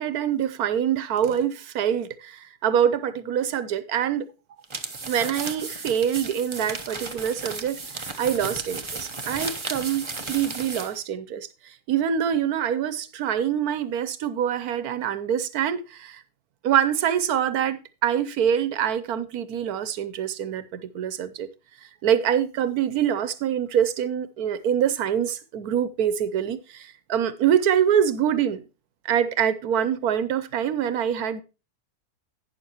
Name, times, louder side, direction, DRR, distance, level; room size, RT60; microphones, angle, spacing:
voice 1, 0.0-4.3 5.1-16.2 16.6-21.5 22.0-28.6 29.0-31.4, right 9 dB, 80° right, 1.2 m, -25 dB
sound 1, 4.6-11.0, right 3 dB, 25° right, 0.9 m, -34 dB
12.0 x 9.4 x 2.9 m
omnidirectional pair, 1.6 m